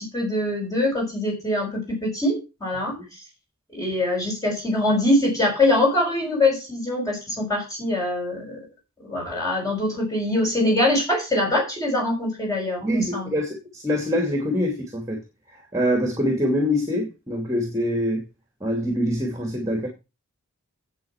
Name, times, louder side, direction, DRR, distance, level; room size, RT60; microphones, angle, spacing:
voice 1, 0.0-3.0 3.7-8.6 9.0-13.3, left 1 dB, 15° left, 5.8 m, -23 dB
voice 2, 12.8-15.2 15.5-18.3 18.6-19.9, equal, 15° right, 2.5 m, -25 dB
8.6 x 8.4 x 5.8 m
head